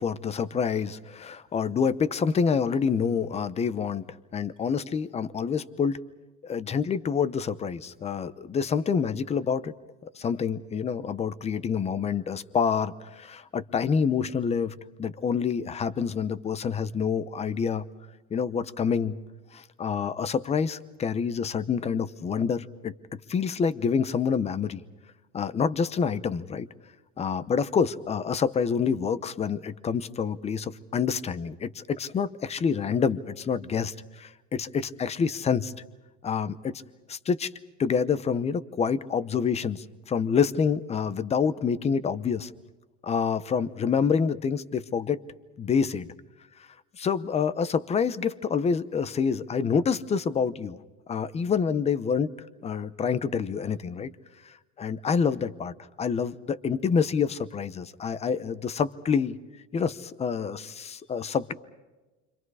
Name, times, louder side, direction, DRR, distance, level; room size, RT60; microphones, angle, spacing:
voice 1, 0.0-4.0 4.3-6.0 6.4-9.7 10.1-17.8 18.3-19.2 19.5-22.9 23.3-24.8 25.3-26.7 27.2-35.7 36.2-36.8 37.1-37.5 37.8-42.5 43.0-45.2 45.6-46.1 47.0-50.8 51.1-52.3 52.6-54.1 54.5-59.4 59.7-61.5, left 6 dB, 20° left, 15 dB, 0.8 m, -27 dB
30.0 x 25.5 x 4.9 m, 1.2 s
cardioid pair, 155°, 34 cm